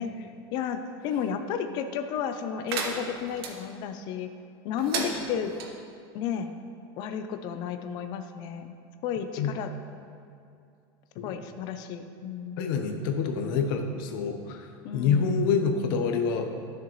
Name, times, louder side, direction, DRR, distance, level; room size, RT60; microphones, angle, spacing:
voice 1, 0.0-4.3 4.6-5.6 6.1-6.5 7.0-8.8 9.0-9.7 11.2-12.6 14.8-15.3, left 7 dB, 35° left, 8 dB, 0.5 m, -32 dB
sound 1, 2.7-3.5 4.8-5.7, right 4 dB, 80° right, 1.1 m, -33 dB
voice 2, 12.6-14.7 14.9-16.5, left 5 dB, 55° left, 4 dB, 0.9 m, -27 dB
12.0 x 6.7 x 3.1 m, 2.5 s
supercardioid pair, 175°, 13 cm